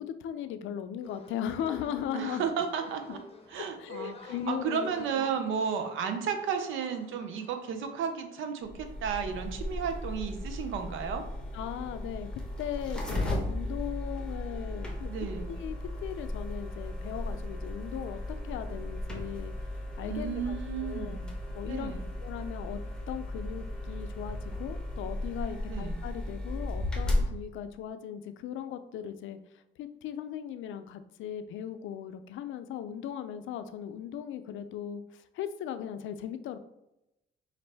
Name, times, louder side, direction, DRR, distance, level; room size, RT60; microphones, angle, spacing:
voice 1, 0.0-2.4 3.6-5.3 11.5-15.1 15.5-15.8 16.0-19.6 20.0-20.5 20.8-21.2 21.5-21.9 22.2-22.8 23.1-29.4 29.8-36.6, left 9 dB, 75° left, 10 dB, 0.4 m, -38 dB
sound 1, 1.0-8.2, left 3 dB, 30° left, 0.7 m, -51 dB
voice 2, 2.1-3.2 3.5-11.2 15.1-15.5 20.0-21.3 21.7-22.1 25.7-26.0, right 7 dB, 80° right, 7 dB, 0.6 m, -33 dB
sound 2, 8.6-27.3, left 1 dB, 5° left, 1.1 m, -35 dB
5.1 x 2.6 x 3.3 m, 0.90 s
cardioid pair, 90°, 20 cm